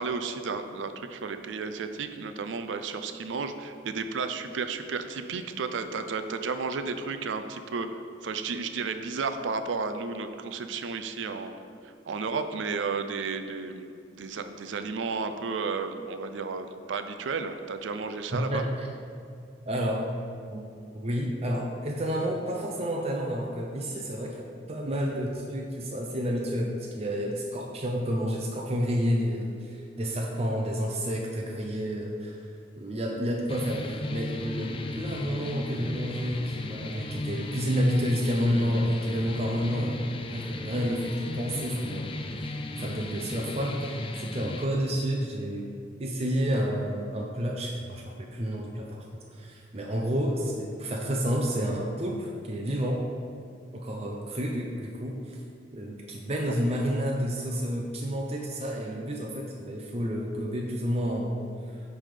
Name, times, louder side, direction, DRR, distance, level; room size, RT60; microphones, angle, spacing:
voice 1, 0.0-11.5 11.8-18.6, right 4 dB, 90° right, 9 dB, 0.5 m, -33 dB
voice 2, 18.3-18.9 19.7-20.1 20.5-20.7 20.9-32.5 32.8-45.7 46.0-48.9 49.1-53.0 53.7-55.4 55.7-61.4 61.7-61.8, equal, 35° right, -1 dB, 0.6 m, -30 dB
sound 1, 33.5-44.6, left 2 dB, 30° left, 0.4 m, -36 dB
9.1 x 3.5 x 5.0 m, 2.4 s
head